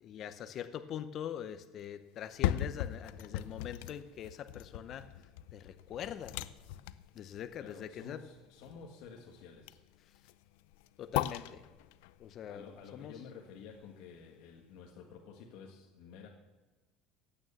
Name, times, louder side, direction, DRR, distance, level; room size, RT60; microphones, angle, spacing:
voice 1, 0.0-5.1 5.5-6.4 7.1-8.2 11.0-11.6 12.2-12.7 12.9-13.1, left 9 dB, 40° left, 10 dB, 0.7 m, -43 dB
sound 1, 2.1-14.2 14.6-14.7, left 13 dB, 85° left, 0.5 m, -40 dB
voice 2, 7.6-9.8 12.5-16.3, left 6 dB, 70° left, 1 dB, 1.6 m, -51 dB
15.5 x 9.1 x 7.0 m, 1.3 s
cardioid pair, 145°, 0 cm